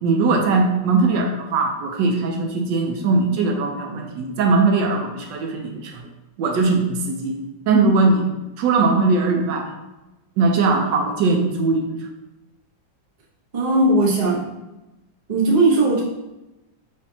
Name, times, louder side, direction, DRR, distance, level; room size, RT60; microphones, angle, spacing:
voice 1, 0.0-6.0 6.4-8.3 8.6-9.7 10.4-11.9, right 3 dB, 75° right, 2 dB, 1.2 m, -20 dB
voice 2, 13.5-14.4 15.3-16.0, right 2 dB, 50° right, -4 dB, 0.4 m, -17 dB
5.1 x 2.7 x 2.7 m, 1.0 s
omnidirectional pair, 2.0 m